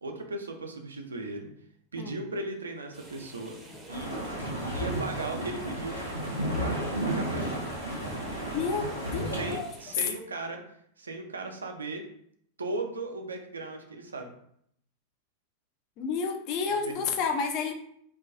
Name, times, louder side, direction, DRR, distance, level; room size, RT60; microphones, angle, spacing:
voice 1, 0.0-1.5 1.9-4.1 4.7-6.0 6.6-6.8 7.0-7.5 9.4-10.6 11.0-12.0 12.6-14.3 16.9-17.0, right 2 dB, 75° right, 4 dB, 0.3 m, -37 dB
sound 1, 2.9-10.1, right 1 dB, 10° right, 0.5 m, -49 dB
sound 2, 3.9-9.6, right 1 dB, 90° left, 0.6 m, -32 dB
voice 2, 8.5-9.7 10.0-10.1 16.0-17.7, left 5 dB, 40° left, 5 dB, 0.3 m, -30 dB
2.3 x 2.2 x 2.4 m, 0.70 s
figure-of-eight pair, 90°, 0 cm